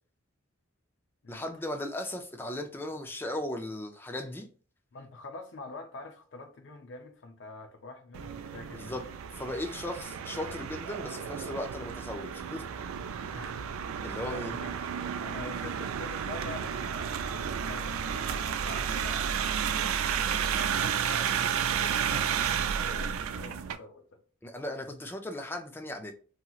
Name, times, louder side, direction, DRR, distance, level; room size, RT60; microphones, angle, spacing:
voice 1, 1.3-4.5 8.8-9.0 9.4-12.6 13.1-13.3 14.0-14.6 24.4-26.1, left 1 dB, 10° left, 0.4 m, -37 dB
voice 2, 4.9-9.1 13.3-13.7 14.0-14.8 15.2-19.4 20.1-24.2, left 3 dB, 60° left, 0.5 m, -46 dB
sound 1, 8.1-23.8, right 7 dB, 80° right, 0.3 m, -32 dB
2.8 x 2.8 x 2.3 m
head